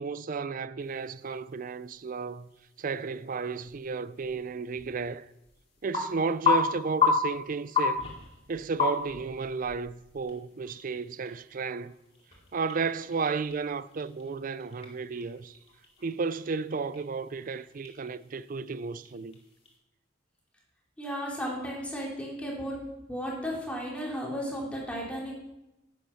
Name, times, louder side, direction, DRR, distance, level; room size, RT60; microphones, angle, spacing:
voice 1, 0.0-2.5 2.8-5.3 5.8-8.1 8.5-12.0 12.5-15.6 16.0-19.4, right 4 dB, 45° right, 0.4 m, -33 dB
sound 1, 0.8-19.8, left 5 dB, 35° left, 2.3 m, -35 dB
voice 2, 21.0-22.8 23.1-25.3, equal, 5° left, 3.2 m, -34 dB
10.0 x 8.4 x 5.7 m
head